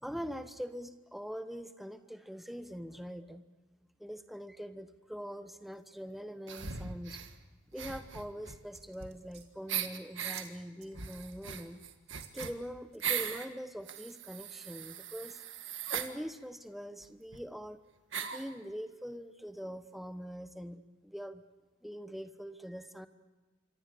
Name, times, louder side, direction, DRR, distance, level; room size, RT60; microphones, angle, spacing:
voice 1, 0.0-3.4 4.0-7.2 7.7-11.8 12.3-15.4 15.9-17.8 18.2-21.4 21.8-23.1, equal, ahead, 9 dB, 1.0 m, -43 dB
sound 1, 6.5-7.3 7.7-9.3 9.7-10.4 10.9-13.5 13.9-16.1 17.0-17.1 17.3-17.4 18.1-18.5, right 8 dB, 70° right, 1.7 m, -39 dB
sound 2, 8.8-9.5 10.2-10.5 10.8-11.6 12.1-12.5 12.9-13.6 14.1-14.2, right 10 dB, 55° right, 2.7 m, -53 dB
28.0 x 25.0 x 6.9 m, 1.2 s
head